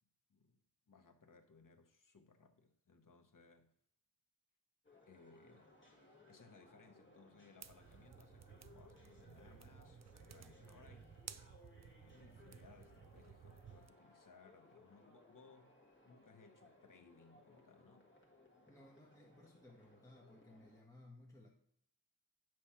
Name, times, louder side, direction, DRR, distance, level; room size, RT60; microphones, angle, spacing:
voice 1, 0.9-3.7 5.1-11.3 12.0-15.8 16.0-18.1, left 4 dB, 50° left, 0.9 m, -64 dB
sound 1, 4.8-20.8, left 2 dB, 30° left, 1.5 m, -65 dB
sound 2, 7.6-13.9, right 7 dB, 45° right, 0.4 m, -57 dB
voice 2, 18.7-21.5, left 1 dB, 10° left, 1.1 m, -60 dB
8.5 x 3.1 x 5.8 m
wide cardioid pair, 60°, 40 cm